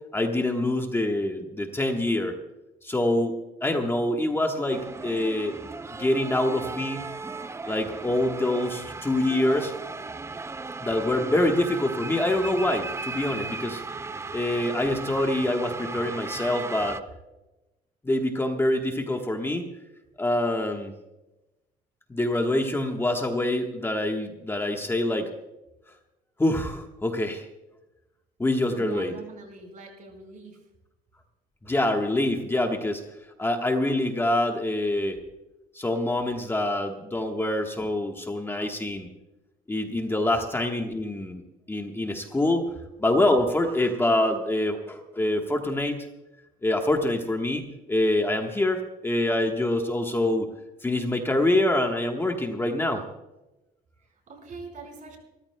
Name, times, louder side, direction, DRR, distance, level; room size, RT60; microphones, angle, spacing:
voice 1, 0.1-2.4 2.8-5.6 6.0-7.1 7.7-9.7 10.8-13.8 14.3-17.0 18.0-19.7 20.2-20.9 22.1-25.3 26.4-27.5 28.4-29.1 31.6-33.0 33.4-35.2 35.7-39.1 39.7-41.4 41.7-42.7 43.0-46.1 46.6-50.5 50.8-53.0, left 1 dB, 15° left, 3 dB, 1.3 m, -25 dB
sound 1, 4.7-17.0, right 4 dB, 15° right, 0.5 m, -36 dB
voice 2, 28.7-30.6 54.0-55.2, right 3 dB, 50° right, 3 dB, 4.6 m, -42 dB
27.5 x 14.0 x 2.2 m, 1.0 s
cardioid pair, 110°, 17 cm